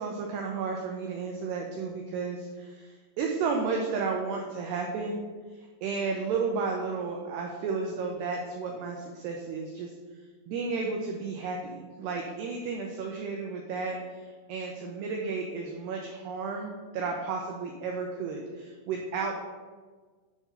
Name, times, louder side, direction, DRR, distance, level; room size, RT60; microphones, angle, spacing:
voice 1, 0.0-5.2 5.5-9.9 10.5-19.4, right 4 dB, 85° right, 1 dB, 2.3 m, -33 dB
9.9 x 3.6 x 5.5 m, 1.4 s
omnidirectional pair, 5.6 m